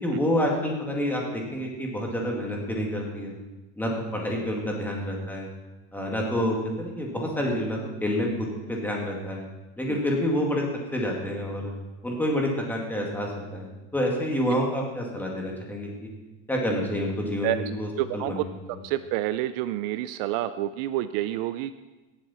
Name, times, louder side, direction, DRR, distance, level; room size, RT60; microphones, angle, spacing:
voice 1, 0.0-3.3 3.8-5.5 5.9-9.4 9.8-10.6 10.9-11.7 12.0-13.7 13.9-16.1 16.5-18.5, equal, 5° left, -1 dB, 2.2 m, -28 dB
voice 2, 18.0-18.5 18.8-21.7, right 14 dB, 60° right, 13 dB, 0.5 m, -28 dB
17.5 x 7.8 x 4.3 m, 1.1 s
supercardioid pair, 140°, 34 cm